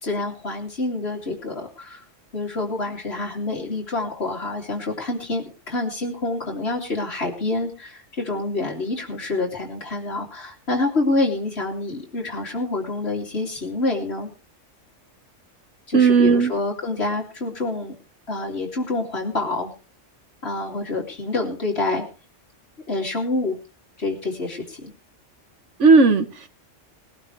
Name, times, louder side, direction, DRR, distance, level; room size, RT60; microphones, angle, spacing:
voice 1, 0.0-2.0 2.3-14.3 15.9-17.9 18.3-19.7 20.4-22.0 22.9-23.5 24.0-24.9, left 2 dB, 55° left, 3.2 m, -27 dB
voice 2, 15.9-16.5 25.8-26.5, right 4 dB, 75° right, 1.5 m, -15 dB
20.5 x 12.0 x 3.3 m
omnidirectional pair, 1.3 m